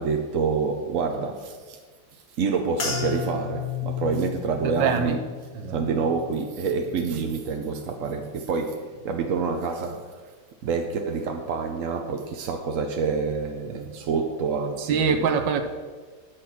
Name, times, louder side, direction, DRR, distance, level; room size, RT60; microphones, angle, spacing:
voice 1, 0.0-1.8 2.1-5.2 5.7-10.3 10.6-15.4, right 5 dB, 60° right, 0.9 m, -27 dB
sound 1, 2.8-7.3 7.7-8.3 8.9-9.1, left 7 dB, 70° left, 2.4 m, -34 dB
voice 2, 4.6-5.2 5.5-5.8 14.8-15.6, right 6 dB, 80° right, 1.4 m, -24 dB
11.0 x 6.6 x 5.8 m
omnidirectional pair, 2.0 m